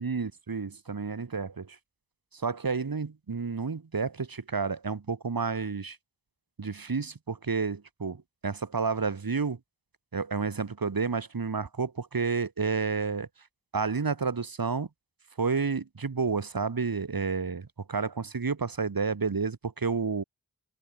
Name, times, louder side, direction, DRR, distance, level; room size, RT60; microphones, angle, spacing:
voice 1, 0.0-1.8 2.3-6.0 6.6-9.6 10.1-13.3 13.7-14.9 15.4-20.2, right 5 dB, 85° right, 5.5 m, -30 dB
open air
wide cardioid pair, 75°, 34 cm